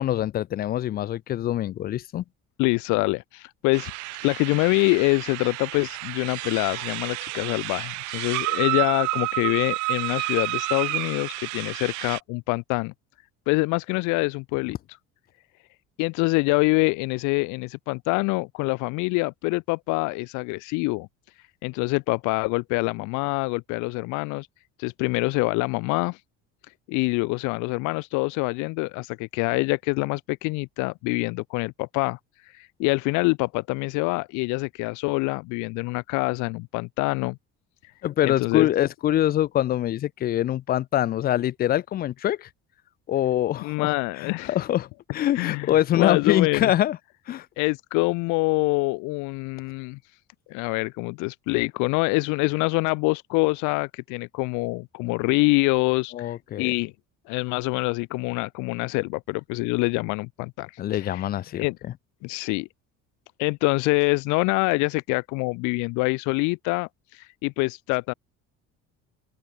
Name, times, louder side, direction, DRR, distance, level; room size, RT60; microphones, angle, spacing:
voice 1, 0.0-2.2 38.0-42.5 43.1-47.0 47.3-47.5 56.1-56.7 60.8-61.9, left 12 dB, 35° left, 0.4 m, -24 dB
voice 2, 2.6-3.9 4.2-12.9 13.5-14.8 16.0-21.1 21.6-24.5 24.8-26.2 26.9-32.2 32.5-37.4 38.2-38.7 43.6-44.5 45.4-46.7 47.6-50.0 50.5-56.9 57.3-61.3 61.5-61.8 62.2-62.7 63.4-68.1, left 27 dB, 85° left, 0.5 m, -25 dB
sound 1, 3.7-12.2, right 23 dB, 75° right, 0.9 m, -30 dB
open air
cardioid pair, 170°, 29 cm